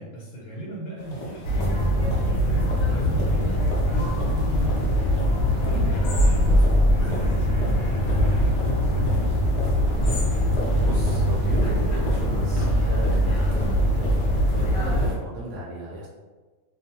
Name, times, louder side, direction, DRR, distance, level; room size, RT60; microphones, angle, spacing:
voice 1, 0.0-4.8 5.1-5.3 5.6-9.4, right 1 dB, 85° left, -5 dB, 1.1 m, -36 dB
sound 1, 1.0-15.2, left 2 dB, 50° left, 0.5 m, -38 dB
sound 2, 1.4-15.1, equal, 65° left, 0.8 m, -22 dB
voice 2, 4.7-5.4 10.4-14.2 14.5-16.1, right 1 dB, 80° right, -5 dB, 1.0 m, -36 dB
2.5 x 2.3 x 2.7 m, 1.3 s
omnidirectional pair, 1.5 m